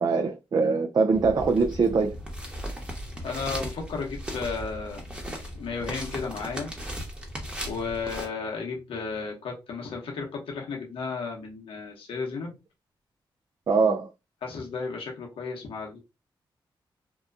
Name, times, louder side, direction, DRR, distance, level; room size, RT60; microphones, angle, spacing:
voice 1, 0.0-2.2 13.7-14.1, right 4 dB, 45° right, 0.4 m, -23 dB
sound 1, 1.1-8.3, equal, 10° right, 1.0 m, -37 dB
voice 2, 3.2-5.1 5.5-6.7 7.6-12.6 14.4-16.0, left 4 dB, 85° left, 0.9 m, -34 dB
2.7 x 2.2 x 2.4 m
cardioid pair, 55°, 9 cm